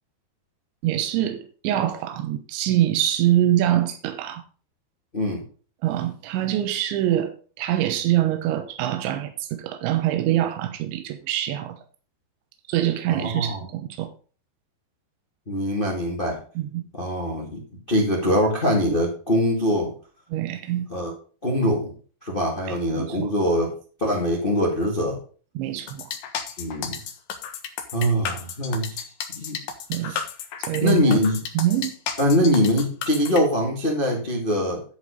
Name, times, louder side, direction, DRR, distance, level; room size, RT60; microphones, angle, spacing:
voice 1, 0.8-4.4 5.8-11.8 12.7-14.1 16.6-16.8 20.3-20.9 22.7-23.3 25.6-26.1 29.9-30.2 30.6-31.2 31.6-31.9, right 12 dB, 85° right, 3.3 m, -24 dB
voice 2, 13.1-13.6 15.5-16.4 16.9-17.6 17.9-19.9 20.9-21.1 21.4-21.9 22.2-23.7 24.0-25.2 26.6-27.0 27.9-29.0 29.3-29.6 30.0-30.2 30.8-31.4 32.2-34.8, equal, 45° left, 0.6 m, -23 dB
sound 1, 25.9-33.4, left 7 dB, 70° left, 1.9 m, -32 dB
11.5 x 5.4 x 5.1 m
omnidirectional pair, 5.1 m